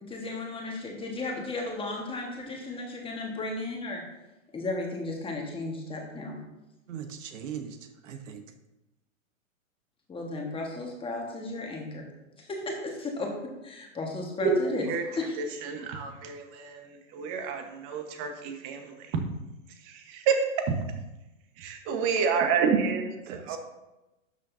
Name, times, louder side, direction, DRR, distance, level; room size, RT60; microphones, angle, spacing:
voice 1, 0.0-4.0 4.5-6.4 10.1-12.1 12.4-13.4 13.6-14.9 15.2-15.4, left 2 dB, 15° left, 1 dB, 1.4 m, -34 dB
voice 2, 6.9-8.4 23.3-23.6, right 8 dB, 65° right, 7 dB, 1.1 m, -40 dB
voice 3, 15.4-16.8 17.1-19.2 19.9-20.4 20.7-20.8 21.6-23.6, right 6 dB, 35° right, 5 dB, 1.2 m, -29 dB
12.0 x 6.3 x 2.7 m, 0.98 s
hypercardioid pair, 125°, 40 cm